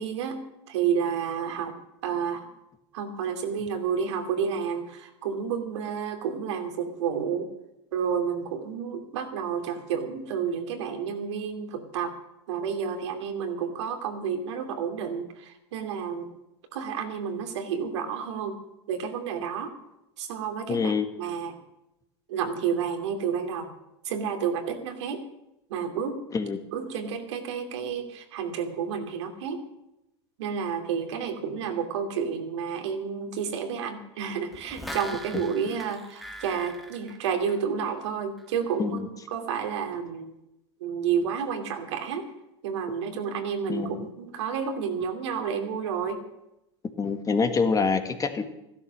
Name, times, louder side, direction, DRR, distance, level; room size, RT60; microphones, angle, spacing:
voice 1, 0.0-1.7 2.0-2.5 2.9-7.5 7.9-12.1 12.5-16.3 16.7-18.6 18.9-19.7 20.2-20.9 21.2-21.6 22.3-23.7 24.0-25.2 25.7-26.2 26.7-29.6 30.4-39.0 39.3-40.4 40.8-42.3 42.6-46.2, right 7 dB, 75° right, 5 dB, 2.6 m, -30 dB
voice 2, 20.7-21.1 26.3-26.6 38.8-39.1 43.7-44.1 47.0-48.4, left 5 dB, 25° left, 8 dB, 1.7 m, -25 dB
sound 1, 34.5-38.0 38.4-38.5, equal, ahead, 1.9 m, -41 dB
14.0 x 12.5 x 6.5 m, 0.88 s
hypercardioid pair, 100°, 15 cm